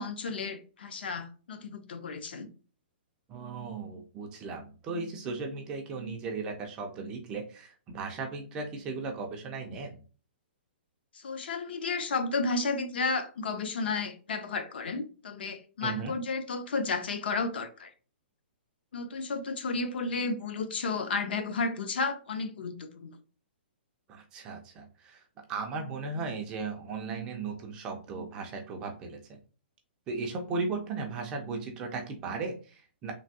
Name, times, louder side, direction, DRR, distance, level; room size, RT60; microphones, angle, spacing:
voice 1, 0.0-2.5 11.1-17.9 18.9-23.2, left 4 dB, 65° left, 0.6 m, -32 dB
voice 2, 3.3-9.9 15.8-16.1 24.1-25.2 25.5-29.4 30.1-33.1, right 4 dB, 10° right, 0.3 m, -36 dB
3.2 x 2.5 x 2.6 m
hypercardioid pair, 180°, 6 cm